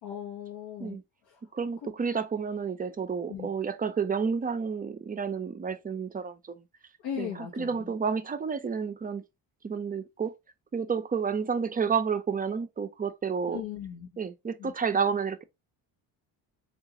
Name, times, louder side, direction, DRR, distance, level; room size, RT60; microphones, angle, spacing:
voice 1, 0.0-1.0 1.3-1.4 1.8-1.9 3.3-3.5 7.0-7.9 13.5-14.1 14.6-14.7, left 9 dB, 85° left, 0.9 m, -38 dB
voice 2, 1.5-6.6 7.2-9.2 9.6-10.3 10.7-13.6 14.2-15.4, right 6 dB, 20° right, 0.4 m, -30 dB
3.6 x 2.4 x 2.7 m
cardioid pair, 75°, 44 cm